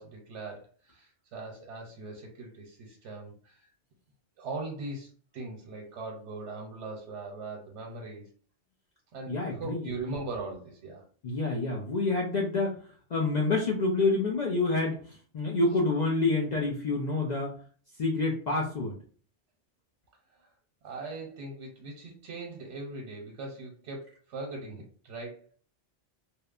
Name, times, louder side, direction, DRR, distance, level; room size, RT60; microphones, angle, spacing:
voice 1, 0.0-3.7 4.4-8.3 9.1-11.0 20.3-20.5 20.8-25.5, right 3 dB, 80° right, 0 dB, 0.9 m, -40 dB
voice 2, 9.3-10.1 11.2-12.8 13.1-17.5 18.0-18.9, left 3 dB, 60° left, -1 dB, 0.4 m, -28 dB
2.9 x 2.0 x 2.3 m, 0.43 s
omnidirectional pair, 1.2 m